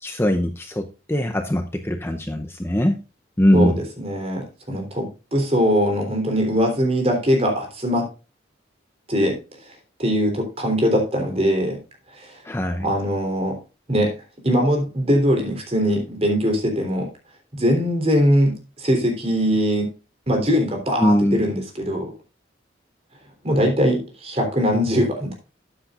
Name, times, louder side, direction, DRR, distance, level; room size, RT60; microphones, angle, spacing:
voice 1, 0.0-3.0 3.4-3.7 12.4-12.9 21.0-21.5, equal, 15° left, 5 dB, 0.7 m, -21 dB
voice 2, 4.0-8.1 9.1-9.4 10.0-11.8 12.1-12.3 12.8-13.6 13.9-14.1 14.4-17.1 17.5-19.9 20.3-22.1 23.4-25.3, equal, 30° right, 2 dB, 3.5 m, -21 dB
13.5 x 8.7 x 2.5 m, 0.31 s
head